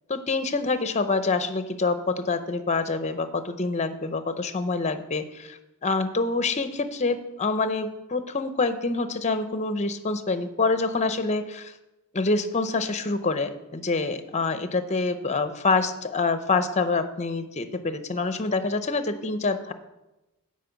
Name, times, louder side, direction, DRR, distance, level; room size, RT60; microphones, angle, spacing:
voice 1, 0.1-11.7 12.1-19.7, left 3 dB, 30° left, 10 dB, 0.6 m, -26 dB
9.0 x 5.3 x 8.0 m, 0.99 s
head